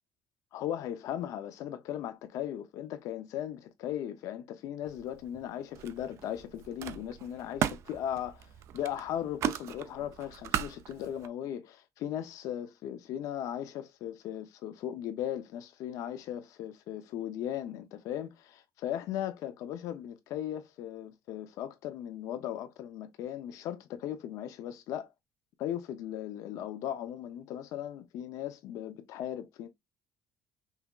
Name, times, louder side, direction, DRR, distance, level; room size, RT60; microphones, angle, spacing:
voice 1, 0.5-25.1 25.6-29.7, left 11 dB, 60° left, 0.6 m, -37 dB
Camera, 4.8-5.5 5.7-11.3, right 10 dB, 50° right, 0.4 m, -37 dB
5.6 x 3.4 x 2.4 m
cardioid pair, 175°, 6 cm